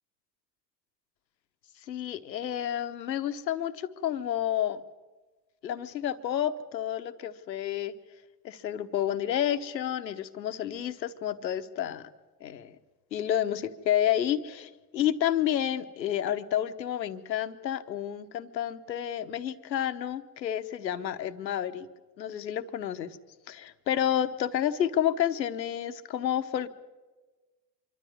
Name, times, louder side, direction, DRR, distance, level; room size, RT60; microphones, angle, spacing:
voice 1, 1.9-4.8 5.6-7.9 8.4-12.1 12.4-12.8 13.1-21.9 22.2-23.2 23.5-26.7, left 10 dB, 85° left, 12 dB, 1.0 m, -30 dB
25.0 x 12.5 x 9.4 m, 1.2 s
figure-of-eight pair, 60°, 50 cm